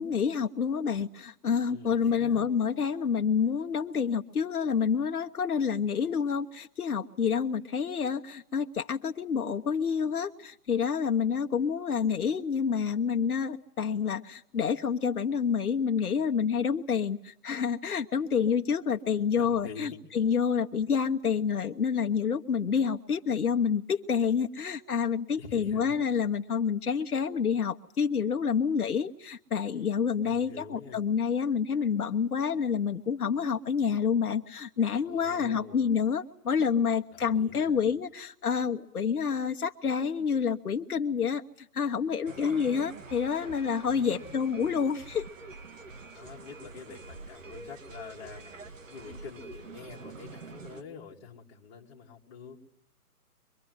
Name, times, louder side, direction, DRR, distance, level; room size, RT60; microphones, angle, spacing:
voice 1, 0.0-45.3, left 6 dB, 70° left, 3 dB, 1.3 m, -28 dB
voice 2, 1.7-2.5 19.4-20.0 25.4-26.0 30.2-31.0 35.0-35.8 37.1-37.9 42.2-42.9 43.9-44.4 46.1-52.6, left 5 dB, 15° left, -3 dB, 2.6 m, -46 dB
sound 1, 42.3-50.8, right 3 dB, 55° right, 1.8 m, -46 dB
24.5 x 22.5 x 9.7 m, 0.65 s
hypercardioid pair, 170°, 47 cm